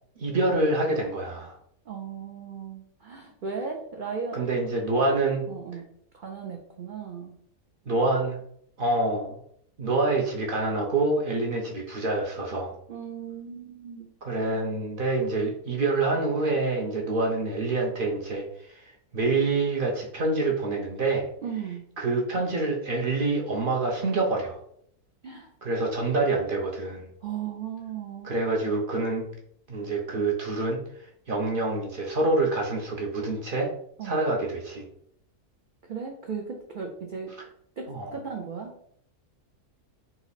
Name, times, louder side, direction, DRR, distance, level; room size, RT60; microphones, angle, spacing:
voice 1, 0.2-1.6 4.3-5.5 7.9-8.5 8.8-9.4 9.8-12.7 14.2-21.3 22.0-24.6 25.6-27.1 28.2-29.3 29.7-33.7 34.0-34.9 37.9-38.1, right 2 dB, 50° right, 0 dB, 0.7 m, -26 dB
voice 2, 1.9-4.4 5.5-5.8 6.1-7.3 12.9-14.1 21.4-21.8 25.2-25.5 27.2-28.3 34.0-34.2 35.9-37.3 37.8-38.7, right 6 dB, 85° right, 2 dB, 0.4 m, -36 dB
4.1 x 2.9 x 4.0 m, 0.69 s
omnidirectional pair, 1.6 m